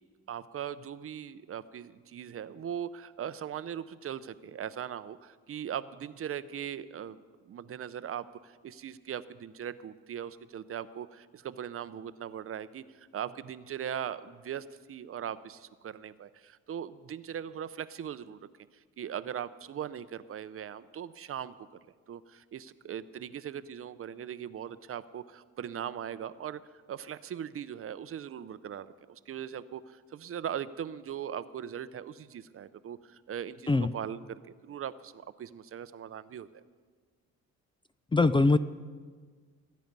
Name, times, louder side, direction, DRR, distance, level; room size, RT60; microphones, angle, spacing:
voice 1, 0.3-18.4 19.0-21.5 22.1-36.6, right 9 dB, 50° right, 14 dB, 0.6 m, -40 dB
voice 2, 38.1-38.6, left 3 dB, 15° left, 14 dB, 0.4 m, -22 dB
20.5 x 9.4 x 5.3 m, 1.6 s
cardioid pair, 90°, 30 cm